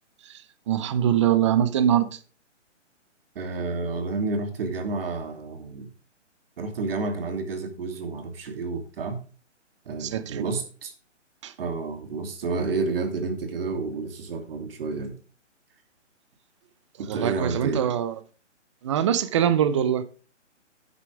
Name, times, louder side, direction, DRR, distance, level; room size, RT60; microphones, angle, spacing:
voice 1, 0.2-2.2 10.0-10.4 11.4-11.5 17.1-18.2 18.8-20.0, right 10 dB, 25° right, 0.7 m, -23 dB
voice 2, 3.3-5.9 6.6-9.2 9.9-10.9 11.6-15.2 17.0-17.8, right 3 dB, 50° right, 2.8 m, -30 dB
11.5 x 8.3 x 3.4 m
hypercardioid pair, 155°, 37 cm